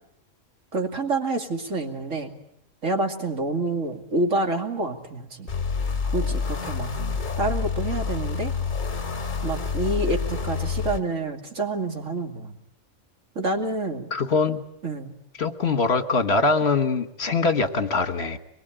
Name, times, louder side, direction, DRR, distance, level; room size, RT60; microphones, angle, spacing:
voice 1, 0.7-2.4 2.8-5.5 6.1-6.9 7.4-8.5 9.4-12.6 13.3-14.1 14.8-15.2, right 2 dB, 75° right, 4 dB, 2.8 m, -28 dB
sound 1, 5.5-11.0, left 5 dB, 40° left, 1.5 m, -28 dB
voice 2, 14.1-14.6 15.4-18.4, left 4 dB, 55° left, 8 dB, 1.7 m, -23 dB
24.0 x 22.5 x 9.1 m, 0.78 s
omnidirectional pair, 1.3 m